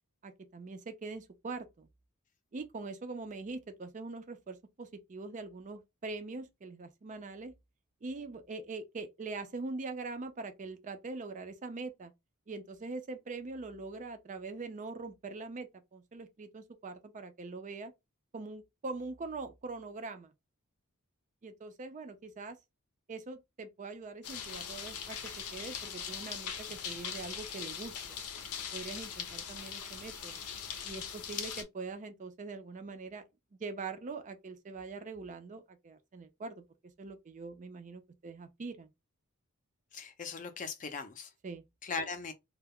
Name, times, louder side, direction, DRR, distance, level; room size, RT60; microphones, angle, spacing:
voice 1, 0.2-1.9 2.5-7.5 8.0-12.1 12.5-17.9 18.3-20.3 21.4-22.6 23.1-28.0 28.7-30.4 30.8-33.2 33.6-36.6 37.0-38.9 41.4-41.6, right 3 dB, 35° right, 0.4 m, -43 dB
sound 1, 24.2-31.6, left 7 dB, 85° left, 0.6 m, -41 dB
voice 2, 39.9-41.3 41.8-42.3, left 4 dB, 35° left, 0.5 m, -39 dB
2.2 x 2.0 x 3.4 m
head